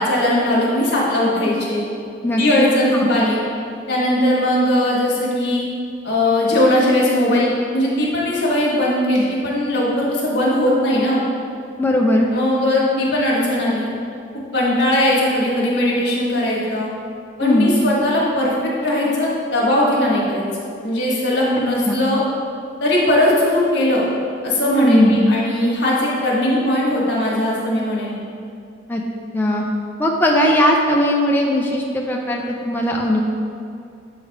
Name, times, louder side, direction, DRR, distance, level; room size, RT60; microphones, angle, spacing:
voice 1, 0.0-1.8 2.4-3.4 3.9-5.7 6.0-11.2 12.3-14.0 14.3-16.9 17.4-20.5 20.8-22.2 22.8-24.0 24.4-28.2, left 1 dB, 60° left, -5 dB, 1.3 m, -19 dB
voice 2, 2.2-2.7 11.8-12.3 17.4-17.7 21.8-22.0 24.7-25.2 28.9-29.0 29.3-29.6 30.0-33.2, left 1 dB, 10° left, -1 dB, 0.3 m, -18 dB
7.4 x 3.3 x 4.6 m, 2.4 s
head